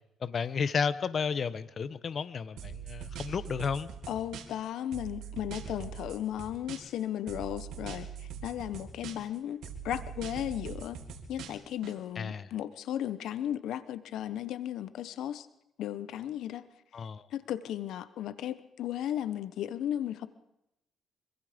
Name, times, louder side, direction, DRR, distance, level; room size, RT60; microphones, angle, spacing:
voice 1, 0.2-3.9 12.2-12.5 16.9-17.2, left 6 dB, 50° left, 14 dB, 1.0 m, -32 dB
sound 1, 2.6-4.6 4.9-7.0 7.3-9.4 9.6-11.9, right 7 dB, 80° right, 3.6 m, -42 dB
voice 2, 4.1-11.0 11.3-15.5 15.8-16.6 17.3-20.3, left 11 dB, 80° left, 14 dB, 1.0 m, -35 dB
26.0 x 24.0 x 5.2 m, 0.86 s
cardioid pair, 90°, 0 cm